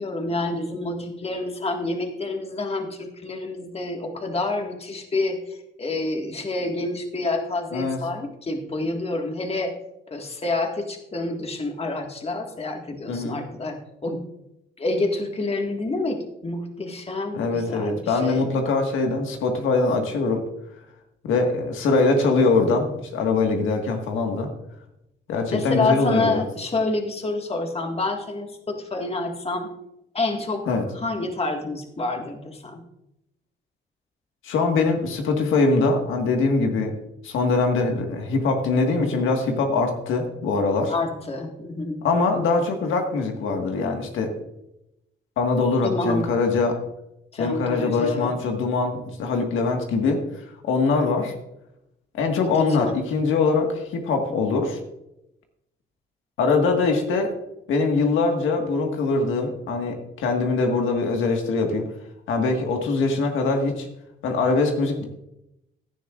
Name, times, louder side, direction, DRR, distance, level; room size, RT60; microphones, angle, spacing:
voice 1, 0.0-5.4 5.8-9.7 10.1-14.2 14.8-18.5 25.5-29.7 30.1-30.6 30.9-32.8 40.9-42.1 45.8-46.2 47.3-48.3 52.4-52.9, left 2 dB, 30° left, 3 dB, 1.8 m, -28 dB
voice 2, 13.1-13.4 17.3-20.4 21.2-24.5 25.3-26.4 30.7-30.8 34.4-36.9 37.2-40.9 42.0-44.3 45.4-46.8 47.4-51.3 52.1-54.8 56.4-57.3 57.7-61.9 62.3-63.9 64.2-65.0, left 3 dB, 85° left, 3 dB, 1.7 m, -22 dB
16.5 x 10.5 x 2.5 m, 0.86 s
cardioid pair, 90°, 20 cm